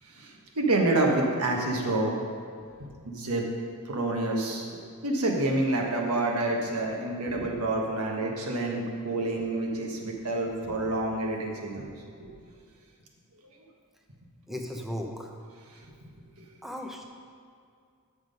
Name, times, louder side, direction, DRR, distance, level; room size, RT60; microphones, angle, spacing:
voice 1, 0.5-2.1 2.8-3.5 3.9-11.9 12.2-12.3, right 2 dB, 85° right, 0 dB, 1.4 m, -28 dB
voice 2, 14.5-15.3 16.6-17.0, equal, ahead, 1 dB, 0.8 m, -36 dB
9.5 x 6.2 x 5.3 m, 2.3 s
head